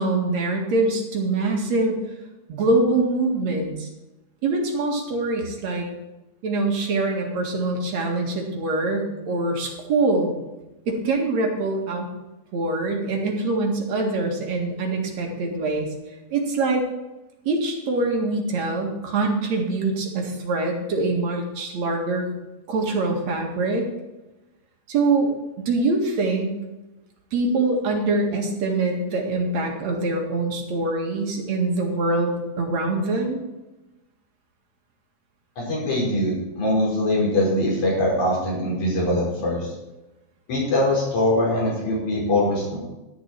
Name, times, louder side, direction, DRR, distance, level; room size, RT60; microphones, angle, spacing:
voice 1, 0.0-2.0 2.5-3.9 4.4-5.9 6.4-10.3 10.9-12.1 12.5-15.9 16.3-16.8 17.4-22.3 22.7-23.8 24.9-25.3 25.6-26.5 27.3-33.4, right 2 dB, 65° right, 1 dB, 3.2 m, -24 dB
voice 2, 35.6-39.7 40.5-42.8, left 1 dB, 80° left, -5 dB, 6.5 m, -22 dB
12.5 x 11.0 x 4.5 m, 1.0 s
omnidirectional pair, 3.4 m